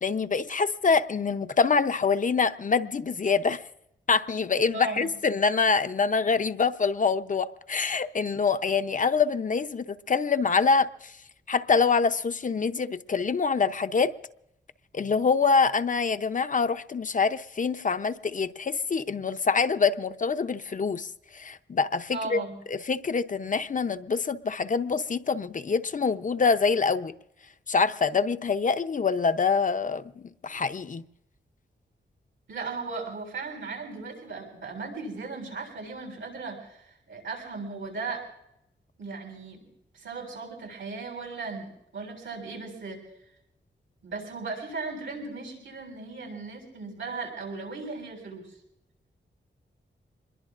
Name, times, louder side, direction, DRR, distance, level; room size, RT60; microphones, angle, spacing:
voice 1, 0.0-3.6 4.1-11.1 11.5-14.1 14.9-22.4 22.7-27.1 27.7-31.0, left 5 dB, 45° left, 0.7 m, -25 dB
voice 2, 4.7-5.1 22.1-22.5 32.5-38.3 39.0-39.7 39.9-43.0 44.0-48.6, right 4 dB, 85° right, 7.4 m, -37 dB
25.5 x 22.0 x 2.5 m
wide cardioid pair, 115°, 19 cm